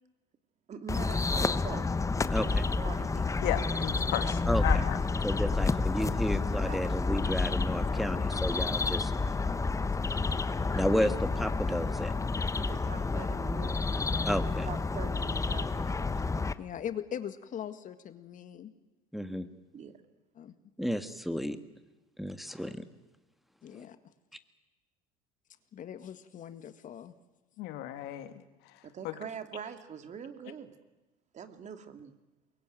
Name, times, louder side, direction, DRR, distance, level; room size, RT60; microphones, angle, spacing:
voice 1, 0.7-1.9 2.3-3.6 6.4-6.9 10.2-10.4 12.5-13.8 14.7-16.2 19.7-19.9 28.8-30.8 31.3-32.1, right 7 dB, 40° right, 8 dB, 2.5 m, -44 dB
sound 1, 0.9-16.5, left 3 dB, 15° left, 1.1 m, -30 dB
voice 2, 2.3-2.6 4.5-4.9 5.2-9.1 10.8-12.1 14.3-14.7 19.1-19.5 20.8-21.6 22.2-22.8 23.8-23.9, equal, ahead, 9 dB, 1.9 m, -32 dB
voice 3, 3.4-5.0 27.6-28.3 29.0-29.1, left 13 dB, 65° left, 9 dB, 2.2 m, -34 dB
voice 4, 4.1-4.4 16.4-18.7 20.4-20.5 23.6-24.0 25.7-27.1, left 9 dB, 45° left, 10 dB, 1.9 m, -41 dB
23.0 x 22.5 x 9.3 m, 1.1 s
hypercardioid pair, 75°, 18 cm